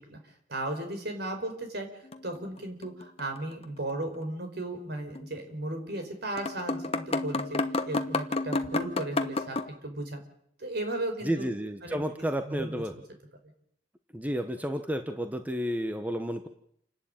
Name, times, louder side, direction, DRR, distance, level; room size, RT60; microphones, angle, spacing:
voice 1, 0.5-1.9 2.2-7.6 7.9-9.6 9.8-10.2 10.6-11.5 11.8-13.0, right 1 dB, 60° right, 5 dB, 4.8 m, -35 dB
sound 1, 2.0-3.4 3.6-3.7 5.1-5.3 6.0-6.1 6.4-9.7, left 2 dB, 35° left, 1.2 m, -31 dB
voice 2, 11.2-12.9 14.1-16.5, equal, 10° right, 7 dB, 1.2 m, -31 dB
28.5 x 12.0 x 8.9 m, 0.71 s
head